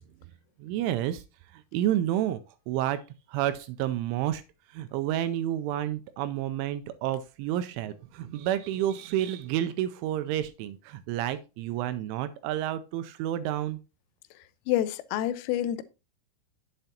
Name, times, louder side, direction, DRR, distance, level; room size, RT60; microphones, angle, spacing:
voice 1, 0.6-1.2 1.5-2.4 2.7-3.0 3.3-4.4 4.7-13.8, right 12 dB, 85° right, 2.8 m, -30 dB
voice 2, 14.7-15.8, left 12 dB, 90° left, 3.2 m, -28 dB
9.1 x 7.9 x 2.8 m
omnidirectional pair, 5.8 m